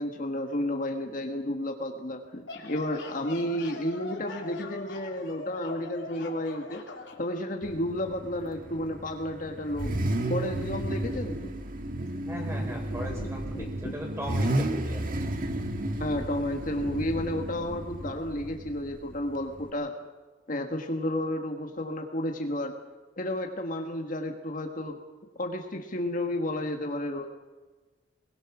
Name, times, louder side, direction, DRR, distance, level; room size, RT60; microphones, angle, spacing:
voice 1, 0.0-6.8 7.2-11.5 12.6-12.7 13.1-13.3 13.5-14.0 16.0-19.9 20.5-22.7 23.2-25.0 25.3-27.3, left 1 dB, 45° left, 4 dB, 1.6 m, -32 dB
sound 1, 2.2-7.2, left 3 dB, 80° left, 3.3 m, -42 dB
Car / Idling / Accelerating revving vroom, 7.6-19.7, right 1 dB, 50° right, 1.7 m, -33 dB
voice 2, 12.3-15.0, equal, 15° right, 0 dB, 5.3 m, -38 dB
22.0 x 20.0 x 6.1 m, 1.3 s
head